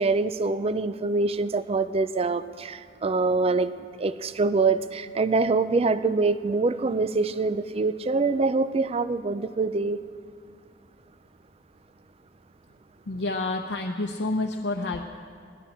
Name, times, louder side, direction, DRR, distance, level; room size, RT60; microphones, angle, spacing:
voice 1, 0.0-3.7 4.0-10.0, right 3 dB, 35° right, 13 dB, 0.4 m, -25 dB
voice 2, 13.1-15.0, left 2 dB, 70° left, 2 dB, 0.8 m, -28 dB
19.5 x 12.5 x 4.3 m, 2.1 s
head